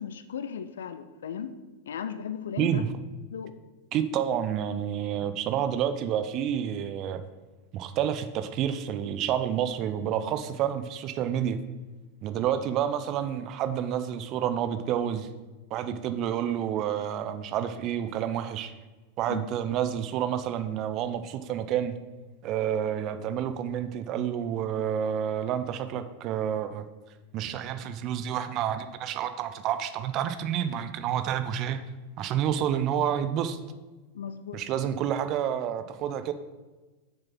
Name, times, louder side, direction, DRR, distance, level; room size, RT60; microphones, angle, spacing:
voice 1, 0.0-1.6 1.9-2.9 3.3-3.6 15.9-16.0 19.3-19.4 34.1-34.8, left 8 dB, 65° left, 11 dB, 0.6 m, -36 dB
voice 2, 2.6-2.9 3.9-7.2 7.7-11.6 12.2-15.3 15.7-18.7 19.2-21.9 22.4-26.9 27.3-31.8 32.2-33.6 34.5-36.3, right 9 dB, 35° right, 10 dB, 0.7 m, -29 dB
6.9 x 6.7 x 6.1 m, 1.2 s
figure-of-eight pair, 90°, 0 cm